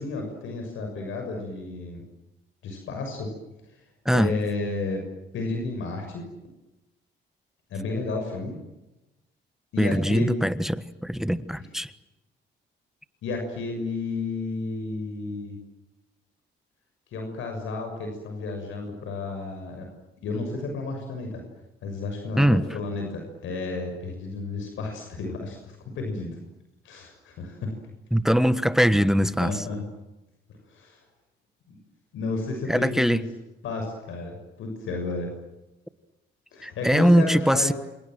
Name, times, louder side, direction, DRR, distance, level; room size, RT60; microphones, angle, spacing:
voice 1, 0.0-2.0 2.6-3.3 3.7-3.8 4.1-5.0 5.3-6.3 7.7-8.6 9.7-10.4 11.6-11.7 13.2-15.6 17.1-19.9 20.2-21.4 21.8-26.4 26.8-27.7 29.4-29.8 30.7-31.0 31.7-31.8 32.1-33.2 33.6-35.3 36.5-37.7, left 3 dB, 80° left, 3 dB, 6.5 m, -32 dB
voice 2, 9.8-11.9 22.4-22.7 28.1-29.5 32.7-33.2 36.6-37.7, equal, ahead, 13 dB, 1.4 m, -21 dB
28.0 x 27.5 x 7.7 m, 0.99 s
cardioid pair, 90°, 20 cm